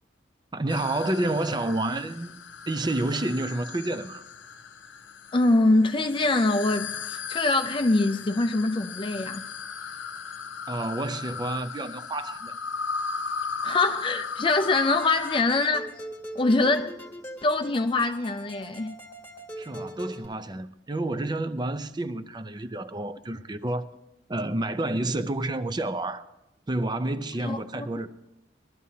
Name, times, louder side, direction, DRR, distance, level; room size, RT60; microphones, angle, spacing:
voice 1, 0.5-2.4 2.7-4.3 10.7-12.6 19.6-23.9 24.3-26.2 26.7-28.1, right 2 dB, 25° right, 0.5 m, -29 dB
sound 1, 0.7-15.4, left 5 dB, 85° left, 0.8 m, -37 dB
voice 2, 5.3-9.4 13.6-15.9 16.3-16.9 17.4-19.0 27.4-27.9, left 2 dB, 25° left, 0.5 m, -24 dB
sound 2, 14.4-20.3, right 1 dB, 10° left, 1.7 m, -42 dB
21.5 x 12.5 x 2.8 m
head